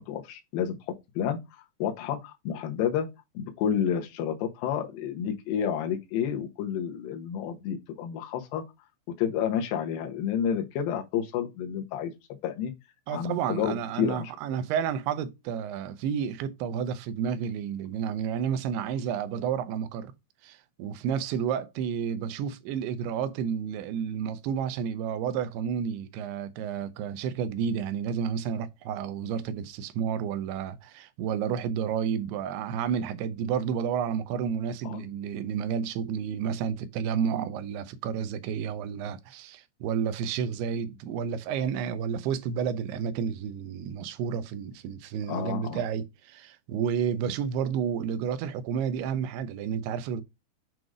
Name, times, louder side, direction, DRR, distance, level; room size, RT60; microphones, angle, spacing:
voice 1, 0.1-0.8 1.2-1.4 1.8-3.1 3.3-8.6 9.2-12.1 12.4-12.7 13.1-14.3 34.8-35.0 45.3-45.8, left 8 dB, 70° left, 2.5 m, -30 dB
voice 2, 13.1-20.1 20.4-50.2, right 7 dB, 90° right, 2.6 m, -31 dB
7.6 x 2.6 x 4.7 m
omnidirectional pair, 4.6 m